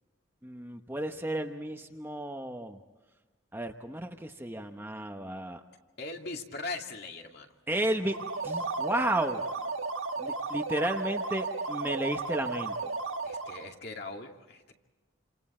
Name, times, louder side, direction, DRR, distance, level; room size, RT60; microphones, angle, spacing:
voice 1, 0.4-2.8 3.5-5.6 7.7-8.2 8.4-9.4 10.2-12.8, right 1 dB, 10° right, 4 dB, 0.9 m, -33 dB
voice 2, 6.0-7.5 13.2-14.7, left 3 dB, 50° left, 2 dB, 2.5 m, -40 dB
sound 1, 8.0-13.7, right 3 dB, 80° right, 1.4 m, -34 dB
29.5 x 27.0 x 4.4 m, 1.2 s
head